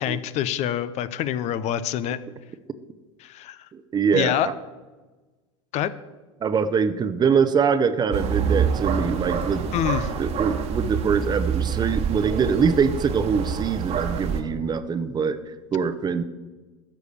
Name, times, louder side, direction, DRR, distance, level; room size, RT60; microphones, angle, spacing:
voice 1, 0.0-2.2 3.2-3.6 4.1-4.5 5.7-5.9 9.7-10.1, left 11 dB, 45° left, 15 dB, 0.6 m, -26 dB
voice 2, 3.7-4.5 6.4-9.7 10.2-16.2, right 6 dB, 25° right, 12 dB, 0.8 m, -23 dB
sound 1, 8.1-14.4, right 7 dB, 45° right, 1.4 m, -26 dB
13.5 x 4.9 x 6.9 m, 1.2 s
hypercardioid pair, 90°, 15 cm